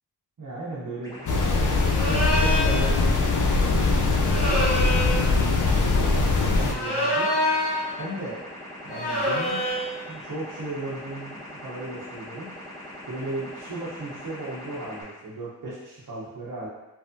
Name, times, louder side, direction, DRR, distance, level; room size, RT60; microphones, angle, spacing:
voice 1, 0.4-7.3 8.0-8.4 8.8-9.8 10.1-12.5 13.1-16.7, right 2 dB, 50° right, -8 dB, 0.8 m, -36 dB
sound 1, 1.0-15.0, equal, 10° left, 1.0 m, -41 dB
sound 2, 1.3-6.7, left 3 dB, 50° left, 0.4 m, -22 dB
sound 3, 1.9-2.8 4.2-5.3 6.7-7.9 8.9-9.9, left 1 dB, 65° left, 1.1 m, -26 dB
3.2 x 2.1 x 2.6 m, 1.1 s
cardioid pair, 45°, 42 cm